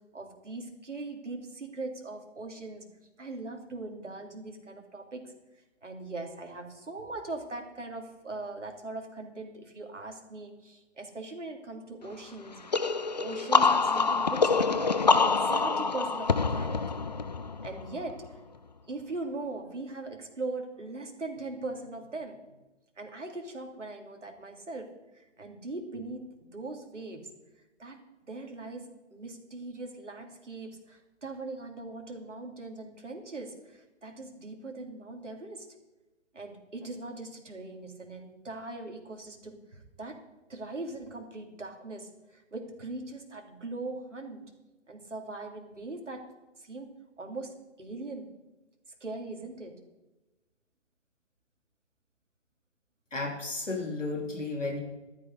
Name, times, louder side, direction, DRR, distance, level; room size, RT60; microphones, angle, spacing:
voice 1, 0.1-2.8 3.2-5.3 5.8-12.6 13.1-15.1 15.4-16.8 17.6-18.4 18.9-22.4 23.0-27.3 27.8-35.7 36.3-40.2 40.5-44.4 44.9-46.3 46.6-48.3 49.0-49.8, right 2 dB, 70° right, 3 dB, 3.1 m, -40 dB
sound 1, 12.7-18.3, left 4 dB, 35° left, 0.5 m, -26 dB
voice 2, 53.1-54.8, left 3 dB, 80° left, 2 dB, 3.5 m, -33 dB
15.0 x 12.5 x 4.1 m, 1.1 s
figure-of-eight pair, 145°, 37 cm